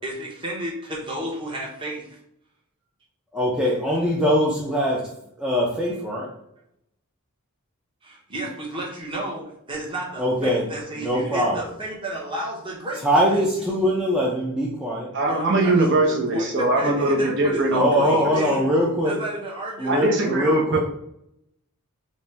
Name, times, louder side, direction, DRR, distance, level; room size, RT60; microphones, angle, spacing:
voice 1, 0.0-2.1 8.0-13.4 15.3-18.6 19.0-20.4, right 1 dB, 20° right, -3 dB, 0.9 m, -32 dB
voice 2, 3.3-6.3 10.2-10.6 11.0-11.6 13.0-15.1 17.7-19.2 19.8-20.8, equal, 5° right, -4 dB, 0.4 m, -22 dB
voice 3, 15.1-18.3 19.9-20.8, right 2 dB, 55° right, 0 dB, 0.7 m, -22 dB
4.2 x 2.2 x 3.2 m, 0.75 s
head